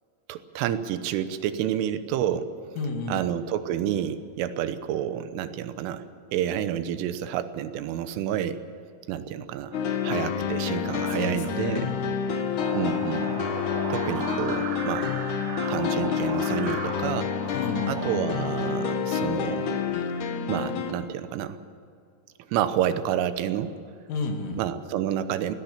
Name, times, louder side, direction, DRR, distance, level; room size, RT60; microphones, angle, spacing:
voice 1, 0.3-2.5 3.1-6.1 6.3-8.6 9.1-9.8 10.0-11.9 12.7-13.4 13.9-15.1 15.7-17.3 17.9-19.7 20.5-21.6 22.5-23.7 24.6-25.6, right 10 dB, 85° right, 11 dB, 3.5 m, -29 dB
voice 2, 2.8-3.2 11.1-11.9 17.5-18.0 24.1-24.6, left 4 dB, 85° left, 3 dB, 5.0 m, -31 dB
sound 1, 9.7-20.9, left 7 dB, 70° left, 1.8 m, -28 dB
sound 2, 12.6-18.2, right 8 dB, 70° right, 3.3 m, -36 dB
19.0 x 16.5 x 8.6 m, 2.4 s
omnidirectional pair, 5.6 m